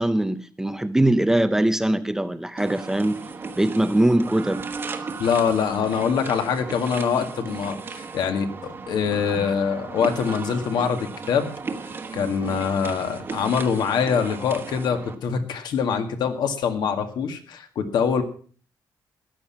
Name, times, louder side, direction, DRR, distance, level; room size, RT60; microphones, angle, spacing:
voice 1, 0.0-3.2 3.6-4.6, right 1 dB, 5° right, 0.5 m, -22 dB
sound 1, 2.6-15.1, right 4 dB, 30° right, 1.3 m, -36 dB
voice 2, 5.2-11.5 12.1-18.2, left 6 dB, 70° left, 2.0 m, -24 dB
14.0 x 10.5 x 5.8 m
cardioid pair, 180°, 8 cm